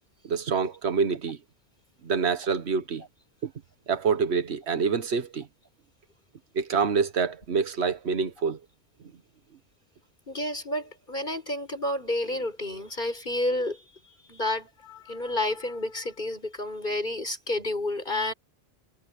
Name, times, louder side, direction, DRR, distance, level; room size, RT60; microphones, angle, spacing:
voice 1, 0.2-1.4 2.0-3.0 3.4-3.5 3.9-5.5 6.5-8.6, right 5 dB, 85° right, 1.4 m, -26 dB
voice 2, 10.3-13.8 14.3-18.3, left 1 dB, 50° left, 5.8 m, -30 dB
omnidirectional pair, 1.1 m